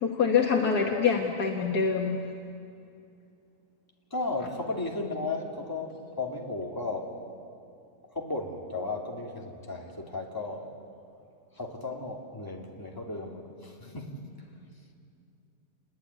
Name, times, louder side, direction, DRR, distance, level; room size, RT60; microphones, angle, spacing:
voice 1, 0.0-2.2, left 6 dB, 80° left, 1 dB, 2.1 m, -25 dB
voice 2, 4.1-7.2 8.1-10.7 11.5-14.2, left 2 dB, 15° left, 0 dB, 2.7 m, -35 dB
28.0 x 22.0 x 9.6 m, 2.5 s
omnidirectional pair, 1.6 m